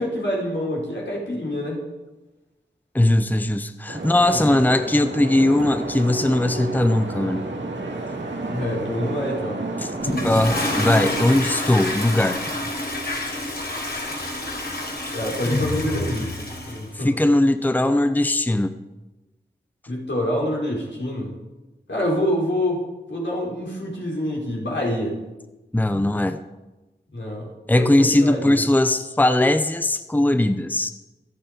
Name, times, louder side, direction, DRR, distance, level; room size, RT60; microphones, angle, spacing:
voice 1, 0.0-1.8 4.3-4.6 8.5-9.6 15.1-16.3 16.7-17.1 19.9-21.4 21.9-22.8 23.1-25.1 27.1-28.5, left 1 dB, 85° left, -3 dB, 4.7 m, -26 dB
voice 2, 2.9-7.5 9.8-9.9 10.2-12.4 17.0-18.7 25.7-26.4 27.7-30.9, left 1 dB, 10° left, 10 dB, 0.7 m, -19 dB
sound 1, 3.9-11.5, right 2 dB, 80° right, 1.9 m, -31 dB
Toilet flush, 10.0-16.8, left 1 dB, 60° left, 4.1 m, -28 dB
25.0 x 8.7 x 5.2 m, 1.1 s
wide cardioid pair, 55°, 19 cm